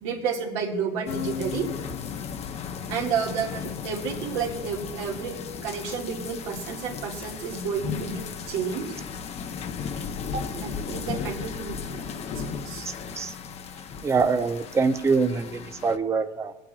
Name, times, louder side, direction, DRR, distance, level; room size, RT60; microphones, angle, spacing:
voice 1, 0.0-1.7 2.9-8.9 10.3-13.1, right 6 dB, 85° right, 0 dB, 2.0 m, -31 dB
sound 1, 1.1-16.0, left 6 dB, 45° left, 0.8 m, -35 dB
voice 2, 12.8-13.3 14.0-16.5, right 4 dB, 20° right, 7 dB, 0.6 m, -24 dB
21.5 x 8.8 x 2.4 m, 1.2 s
supercardioid pair, 105°, 14 cm